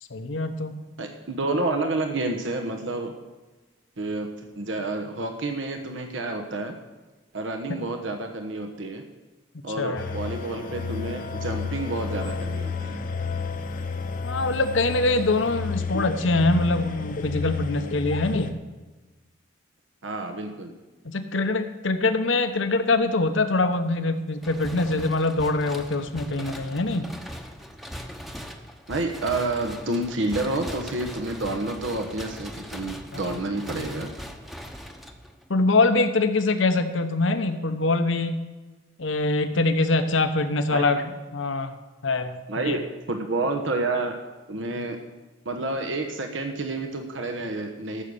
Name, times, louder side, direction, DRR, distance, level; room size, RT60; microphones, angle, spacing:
voice 1, 0.1-0.7 9.8-10.1 14.2-18.6 21.0-27.1 33.1-33.2 35.5-38.5 39.0-41.0 41.3-41.7 42.0-42.4 42.6-42.8, left 2 dB, 80° left, 8 dB, 1.0 m, -24 dB
voice 2, 1.0-3.1 4.0-6.7 7.3-9.0 9.6-13.0 20.0-20.7 28.9-34.1 39.5-39.6 40.7-40.9 42.5-42.8 43.1-44.2 44.5-45.0 45.4-48.0, right 2 dB, 80° right, 4 dB, 1.1 m, -29 dB
sound 1, 10.0-18.5, left 5 dB, 45° left, 0.8 m, -31 dB
sound 2, 24.4-35.6, equal, ahead, 0.8 m, -40 dB
14.0 x 6.4 x 7.0 m, 1.2 s
head